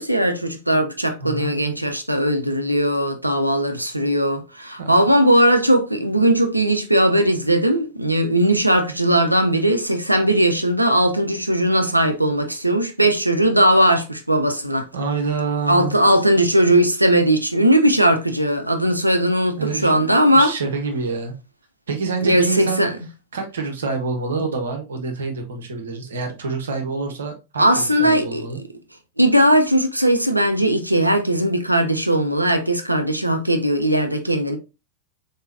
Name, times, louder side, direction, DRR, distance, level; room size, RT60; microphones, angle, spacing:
voice 1, 0.0-14.9 15.7-20.5 22.2-22.9 27.6-28.5 29.2-34.6, right 1 dB, 85° right, 0.6 m, -18 dB
voice 2, 1.2-1.6 4.8-5.0 14.9-15.9 19.6-21.3 21.9-22.8 23.3-28.6, right 4 dB, 65° right, 1.0 m, -27 dB
3.8 x 3.7 x 2.6 m
figure-of-eight pair, 90°, 0 cm